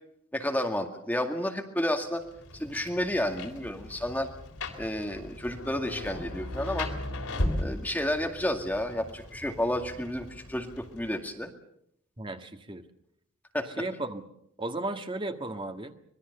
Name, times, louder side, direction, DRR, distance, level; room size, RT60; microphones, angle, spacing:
voice 1, 0.3-2.2 2.5-4.3 4.8-6.9 7.6-11.5 13.5-13.7, left 1 dB, 10° left, 4 dB, 2.1 m, -31 dB
Rain, 2.2-11.3, left 1 dB, 90° left, 3.6 m, -37 dB
voice 2, 12.2-12.8 13.8-14.2 14.6-15.9, right 2 dB, 25° right, 6 dB, 1.7 m, -34 dB
25.0 x 20.5 x 6.8 m, 0.72 s
head